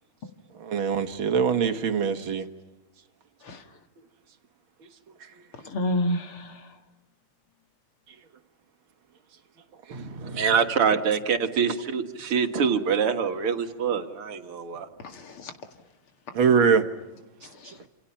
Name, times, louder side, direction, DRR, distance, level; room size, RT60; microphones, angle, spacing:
voice 1, 0.6-2.5 10.2-10.3 16.4-16.9, right 6 dB, 70° right, 8 dB, 2.3 m, -23 dB
voice 2, 5.6-6.7 15.0-15.5 17.4-17.9, left 1 dB, 80° left, 6 dB, 2.9 m, -30 dB
voice 3, 9.9-14.9, right 6 dB, 90° right, 6 dB, 2.7 m, -25 dB
28.5 x 28.5 x 5.8 m, 1.0 s
omnidirectional pair, 2.4 m